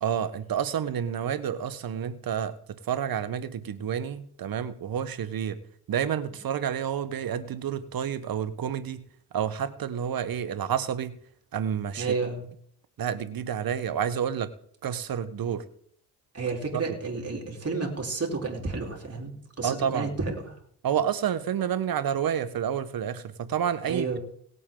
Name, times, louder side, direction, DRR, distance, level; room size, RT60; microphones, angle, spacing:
voice 1, 0.0-5.6 5.9-9.0 9.3-11.1 11.5-12.1 13.0-14.5 14.8-15.6 16.7-17.0 19.6-20.1 20.8-24.2, right 8 dB, 60° right, 14 dB, 1.2 m, -29 dB
voice 2, 12.0-12.4 16.3-20.5 23.9-24.2, right 4 dB, 35° right, 0 dB, 3.9 m, -31 dB
18.5 x 8.2 x 3.8 m, 0.64 s
supercardioid pair, 60°, 41 cm